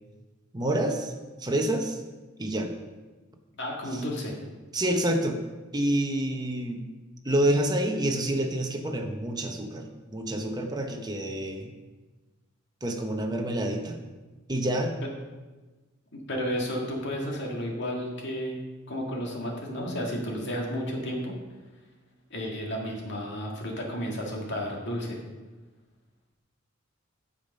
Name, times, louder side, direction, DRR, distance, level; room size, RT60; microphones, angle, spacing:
voice 1, 0.5-1.1 1.4-2.0 2.4-2.7 3.9-4.0 4.7-5.4 5.7-6.8 7.2-11.7 12.8-14.0 14.5-14.9, right 1 dB, 20° right, 3 dB, 0.9 m, -28 dB
voice 2, 3.5-4.4 16.1-18.5 18.9-21.3 22.3-25.2, equal, 60° left, -1 dB, 2.0 m, -32 dB
8.7 x 7.0 x 5.4 m, 1.2 s
head